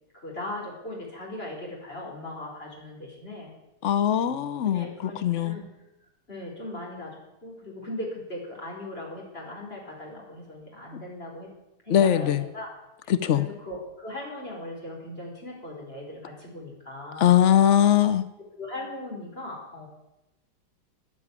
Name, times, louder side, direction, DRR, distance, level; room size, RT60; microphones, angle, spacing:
voice 1, 0.1-3.5 4.6-5.7 6.3-11.5 11.8-12.7 13.0-17.3 18.6-19.9, left 1 dB, 25° left, -1 dB, 5.0 m, -39 dB
voice 2, 3.8-5.5 11.9-12.4 13.1-13.5 17.2-18.2, left 10 dB, 80° left, 12 dB, 0.6 m, -21 dB
14.5 x 10.0 x 9.7 m, 0.93 s
omnidirectional pair, 2.4 m